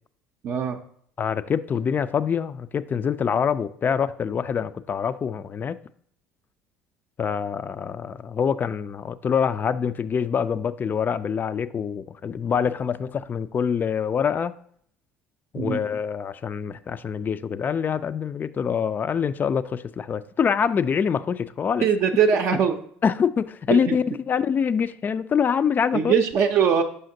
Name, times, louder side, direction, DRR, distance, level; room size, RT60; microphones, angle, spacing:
voice 1, 0.4-0.8 15.5-15.8 21.8-22.8 23.9-24.0 25.9-26.8, right 7 dB, 55° right, 0.5 m, -21 dB
voice 2, 1.2-5.8 7.2-14.5 15.5-21.9 23.0-26.1, left 7 dB, 35° left, 0.3 m, -25 dB
6.6 x 5.6 x 2.7 m
hypercardioid pair, 65°, 6 cm